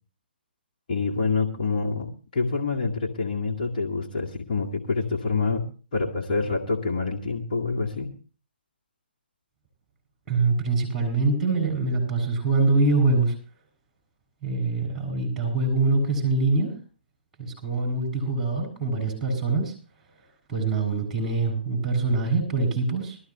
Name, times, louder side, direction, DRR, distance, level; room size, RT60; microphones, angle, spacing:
voice 1, 0.9-5.7 5.9-8.1, left 4 dB, 45° left, -2 dB, 2.1 m, -27 dB
voice 2, 10.3-13.3 14.4-16.7 17.4-19.7 20.5-23.2, right 3 dB, 5° right, 2 dB, 7.5 m, -24 dB
21.0 x 14.0 x 3.1 m, 0.37 s
figure-of-eight pair, 130°, 6 cm